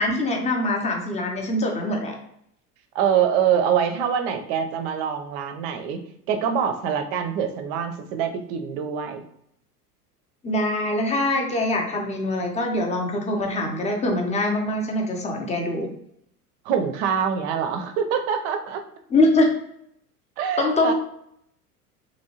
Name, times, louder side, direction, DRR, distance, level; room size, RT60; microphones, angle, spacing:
voice 1, 0.0-2.1 10.4-15.9 19.1-19.5 20.6-20.9, left 1 dB, 15° left, 2 dB, 0.6 m, -23 dB
voice 2, 2.9-6.0 6.3-9.2 16.6-18.8 20.4-20.9, right 8 dB, 45° right, 6 dB, 0.5 m, -24 dB
2.9 x 2.6 x 2.8 m, 0.72 s
hypercardioid pair, 85°, 46 cm